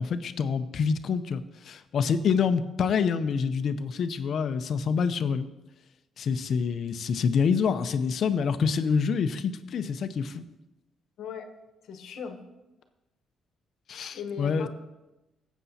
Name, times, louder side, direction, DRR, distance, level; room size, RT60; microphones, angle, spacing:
voice 1, 0.0-5.5 6.2-10.4 13.9-14.7, left 6 dB, 60° left, 12 dB, 0.6 m, -27 dB
voice 2, 11.2-11.5 11.9-12.4 14.1-14.7, left 6 dB, 75° left, 6 dB, 1.0 m, -37 dB
15.0 x 8.1 x 2.8 m, 0.99 s
cardioid pair, 95°, 0 cm